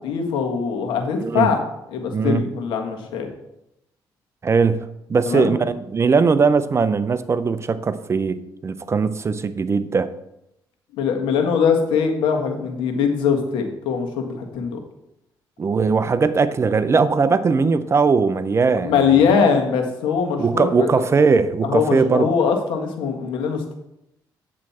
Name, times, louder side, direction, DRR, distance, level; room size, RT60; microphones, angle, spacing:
voice 1, 0.0-1.6 1.9-3.3 5.2-5.5 11.0-14.8 18.8-21.0 21.6-23.7, left 6 dB, 90° left, 4 dB, 1.5 m, -21 dB
voice 2, 1.2-1.5 2.1-2.4 4.4-4.8 5.1-8.4 8.6-10.1 15.6-19.3 20.4-22.3, right 5 dB, 35° right, 13 dB, 0.6 m, -19 dB
8.7 x 7.5 x 4.2 m, 0.84 s
cardioid pair, 90°, 8 cm